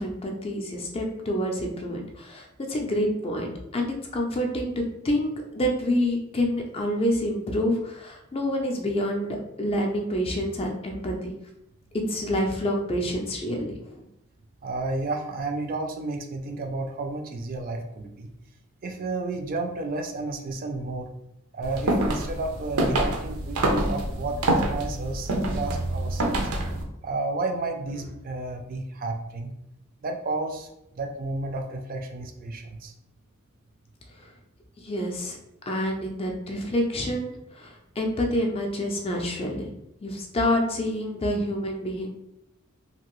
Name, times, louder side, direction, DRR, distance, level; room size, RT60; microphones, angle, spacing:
voice 1, 0.0-11.3 12.1-14.0 34.8-35.4 35.7-39.7 40.0-42.1, equal, 25° left, 2 dB, 0.4 m, -27 dB
voice 2, 14.6-18.3 18.8-21.1 21.5-26.5 27.0-29.5 30.0-30.7 30.9-32.9, right 2 dB, 40° right, 3 dB, 0.4 m, -32 dB
sound 1, 21.6-26.8, right 1 dB, 90° right, 0.6 m, -26 dB
2.8 x 2.5 x 3.0 m, 0.82 s
head